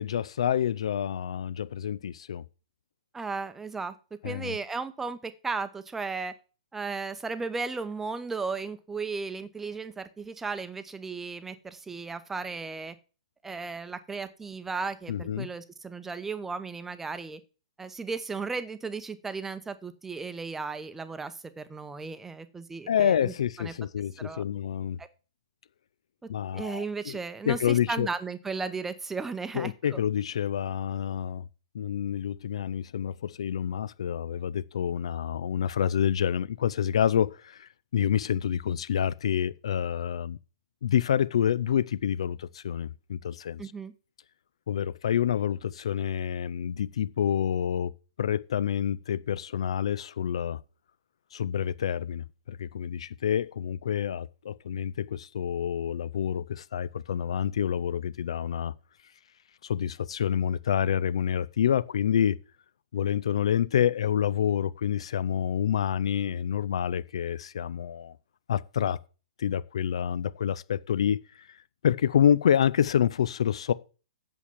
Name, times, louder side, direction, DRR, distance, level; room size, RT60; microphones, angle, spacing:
voice 1, 0.0-2.4 4.2-4.6 15.1-15.5 22.9-25.0 26.3-27.2 27.5-28.1 29.5-31.4 31.7-40.4 40.8-43.6 44.7-47.9 48.2-50.6 51.3-58.7 59.6-62.4 62.9-68.1 68.5-69.0 69.4-71.5 71.8-73.7, left 9 dB, 55° left, 0.5 m, -28 dB
voice 2, 3.1-6.3 6.7-13.0 13.4-17.4 17.8-23.7 24.2-24.4 25.0-25.1 26.2-30.0 43.6-43.9, right 4 dB, 10° right, 0.8 m, -35 dB
8.3 x 7.1 x 7.2 m
figure-of-eight pair, 115°, 4 cm